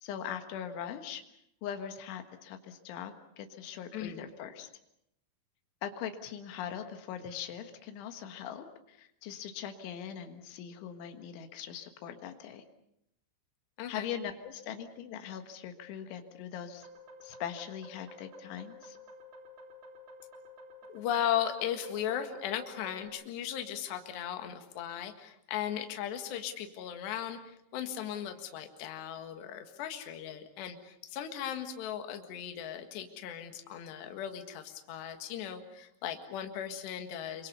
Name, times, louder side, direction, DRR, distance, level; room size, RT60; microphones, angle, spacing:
voice 1, 0.0-1.2 1.6-4.7 5.8-12.6 13.9-16.9 17.2-19.0, left 9 dB, 90° left, 7 dB, 4.0 m, -41 dB
voice 2, 3.9-4.2 13.8-14.1 20.9-37.5, left 10 dB, 70° left, 6 dB, 3.8 m, -37 dB
sound 1, 16.8-23.1, left 2 dB, 65° right, 5.3 m, -51 dB
28.5 x 24.0 x 6.9 m, 0.78 s
omnidirectional pair, 5.3 m